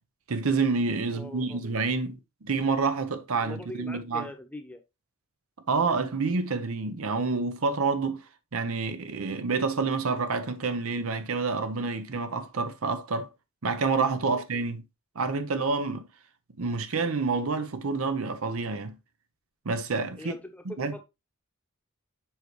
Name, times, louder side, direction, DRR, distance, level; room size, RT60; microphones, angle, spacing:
voice 1, 0.3-4.3 5.7-8.2 8.5-13.3 13.6-14.8 15.1-16.1 16.6-19.0 19.6-20.4 20.6-21.0, right 4 dB, 75° right, 0.8 m, -28 dB
voice 2, 1.1-1.6 3.4-4.8 14.2-14.4 20.2-21.0, left 1 dB, 5° left, 0.9 m, -42 dB
7.4 x 4.6 x 3.0 m
head